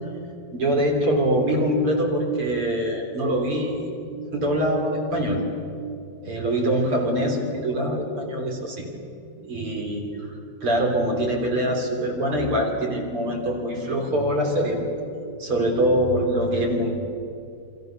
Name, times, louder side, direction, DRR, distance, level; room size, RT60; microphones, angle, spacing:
voice 1, 0.5-3.8 4.3-5.4 6.2-8.9 9.5-10.3 10.6-14.8 15.4-16.9, right 1 dB, 35° right, 1 dB, 3.8 m, -24 dB
28.0 x 26.5 x 6.8 m, 2.5 s
omnidirectional pair, 5.0 m